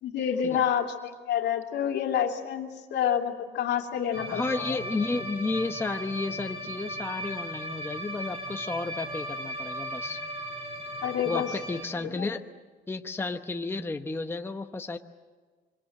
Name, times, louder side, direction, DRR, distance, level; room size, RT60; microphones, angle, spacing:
voice 1, 0.0-4.8 11.0-11.5 12.0-12.3, left 9 dB, 80° left, 3 dB, 2.6 m, -28 dB
sound 1, 4.1-11.8, equal, 35° right, 4.2 m, -37 dB
voice 2, 4.3-10.2 11.2-12.4 12.9-15.0, left 3 dB, 15° left, 6 dB, 0.9 m, -32 dB
25.5 x 25.0 x 7.6 m, 1.4 s
cardioid pair, 135°, 18 cm